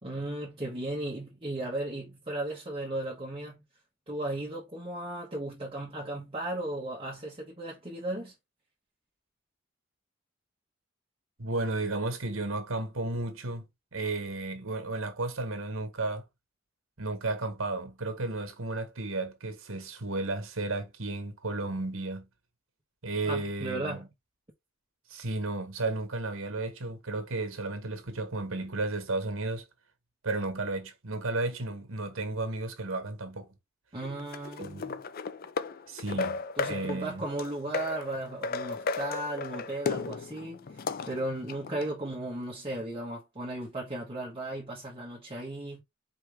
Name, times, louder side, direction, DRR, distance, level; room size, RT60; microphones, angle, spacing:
voice 1, 0.0-3.6 4.1-8.3 23.2-24.1 33.9-35.1 36.1-36.3 36.6-45.8, right 1 dB, 25° right, 1.3 m, -36 dB
voice 2, 11.4-13.6 13.9-16.2 17.0-22.3 23.0-24.1 25.1-29.6 30.2-33.5 34.6-34.9 35.9-36.4 36.7-37.2, right 2 dB, 80° right, 1.4 m, -33 dB
sound 1, 34.0-41.9, left 4 dB, 45° left, 0.4 m, -35 dB
4.8 x 3.2 x 3.4 m
head